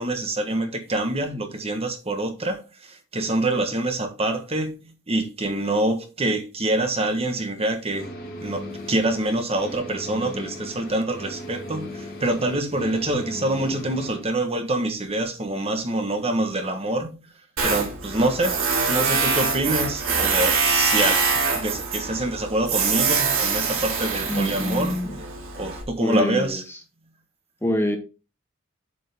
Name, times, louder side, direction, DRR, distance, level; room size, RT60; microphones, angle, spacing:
voice 1, 0.0-8.1 8.4-17.2 17.6-18.6 18.9-21.2 21.5-25.0 25.6-26.6, right 1 dB, 30° right, 1.4 m, -26 dB
sound 1, 7.9-14.2, left 1 dB, 50° left, 3.1 m, -37 dB
Tools, 17.6-25.8, right 5 dB, 85° right, 2.6 m, -24 dB
voice 2, 24.3-25.1 26.0-26.6 27.6-28.0, equal, 10° left, 0.9 m, -25 dB
7.8 x 5.3 x 3.5 m
head